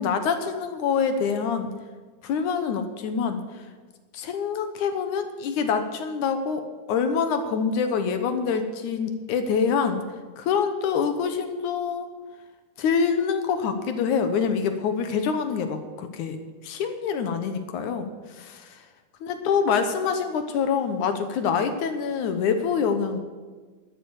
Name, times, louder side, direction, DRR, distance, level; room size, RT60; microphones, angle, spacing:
voice 1, 0.0-1.7 2.2-3.4 4.1-10.0 10.4-12.1 12.8-16.4 16.6-18.8 19.2-23.2, left 6 dB, 75° left, 8 dB, 2.5 m, -25 dB
13.0 x 10.0 x 8.1 m, 1.4 s
omnidirectional pair, 3.5 m